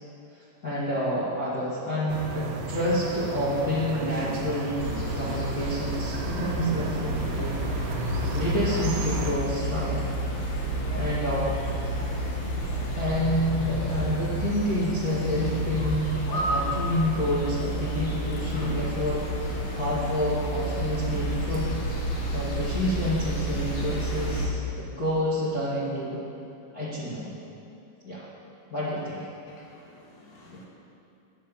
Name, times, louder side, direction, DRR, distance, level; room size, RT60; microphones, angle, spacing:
voice 1, 0.6-7.6 8.3-10.1 11.0-11.5 13.0-19.2 19.7-21.7 22.3-26.2 26.7-27.3 28.1-28.2 28.7-29.2, equal, 30° left, -10 dB, 1.9 m, -28 dB
sound 1, 2.1-9.3, right 3 dB, 75° right, 2.6 m, -34 dB
sound 2, 4.8-24.5, equal, 50° left, 1.7 m, -30 dB
voice 2, 29.5-30.7, left 2 dB, 80° left, -3 dB, 3.8 m, -53 dB
10.0 x 9.1 x 7.3 m, 2.7 s
omnidirectional pair, 4.1 m